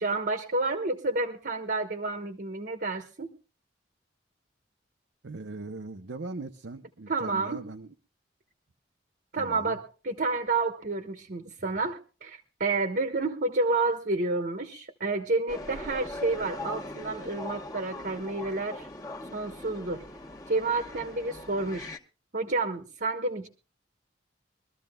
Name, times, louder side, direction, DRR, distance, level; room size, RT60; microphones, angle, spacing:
voice 1, 0.0-3.3 7.1-7.6 9.3-18.9 19.3-20.0 20.5-21.9 22.3-23.5, right 3 dB, 55° right, 6 dB, 1.2 m, -30 dB
voice 2, 5.2-7.9 9.4-9.8, right 3 dB, 80° right, 7 dB, 0.8 m, -40 dB
sound 1, 15.5-22.0, left 2 dB, 20° left, 1.0 m, -41 dB
23.5 x 13.5 x 2.3 m, 0.34 s
head